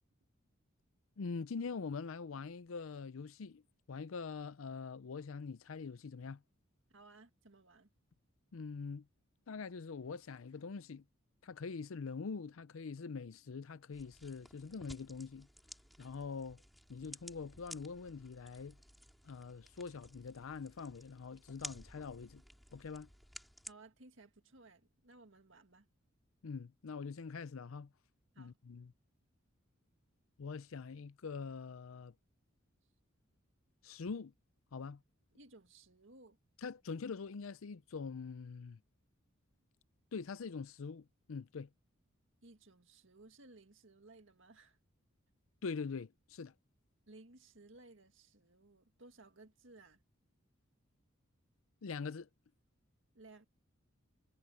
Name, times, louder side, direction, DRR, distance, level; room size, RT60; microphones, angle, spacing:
voice 1, 1.2-3.6 3.9-6.4 8.5-9.1 9.5-11.0 11.4-15.5 16.0-16.6 16.9-18.8 19.2-22.4 22.7-23.1 26.4-27.9 28.4-28.9 30.4-32.1 33.8-34.3 34.7-35.0 36.6-38.8 40.1-41.7 45.6-46.5 51.8-52.3, left 5 dB, 80° left, 0.5 m, -44 dB
voice 2, 6.9-7.9 23.7-25.9 28.3-28.6 35.3-36.4 42.4-44.8 47.1-50.0 53.1-53.5, right 2 dB, 65° right, 2.0 m, -59 dB
sound 1, 13.9-23.7, equal, ahead, 4.8 m, -55 dB
head